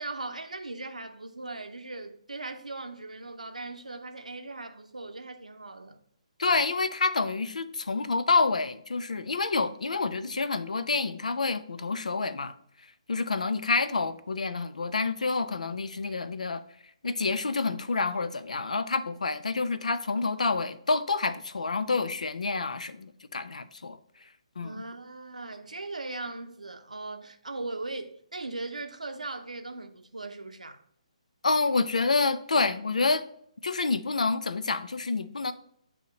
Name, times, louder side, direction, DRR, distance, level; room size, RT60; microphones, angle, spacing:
voice 1, 0.0-6.0 13.4-13.5 24.6-30.8, right 2 dB, 90° right, 0.7 m, -39 dB
voice 2, 6.4-12.5 13.1-16.6 17.0-24.0 24.6-24.8 31.4-33.2 33.6-35.5, left 3 dB, 80° left, 0.5 m, -28 dB
8.3 x 2.8 x 4.0 m
figure-of-eight pair, 140°, 4 cm